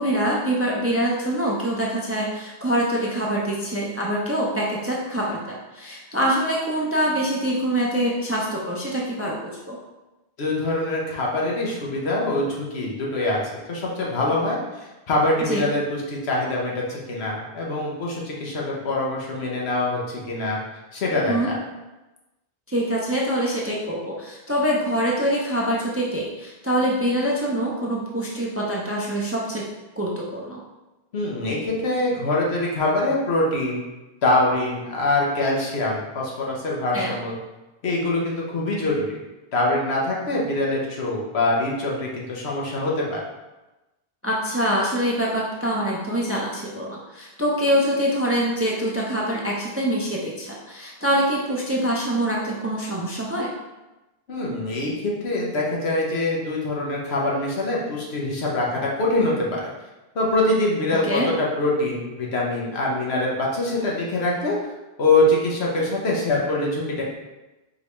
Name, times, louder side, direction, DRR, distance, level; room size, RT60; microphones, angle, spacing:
voice 1, 0.0-9.8 15.5-15.6 21.3-21.5 22.7-29.6 30.0-30.6 36.9-37.1 44.2-53.5 61.0-61.3, equal, 20° right, -3 dB, 0.4 m, -24 dB
voice 2, 10.4-20.6 20.9-21.6 31.1-33.9 34.2-37.4 37.8-39.2 39.5-43.2 54.3-59.7 60.1-64.6 65.0-67.0, left 2 dB, 85° left, -3 dB, 1.2 m, -24 dB
4.6 x 3.3 x 3.0 m, 1.1 s
omnidirectional pair, 1.0 m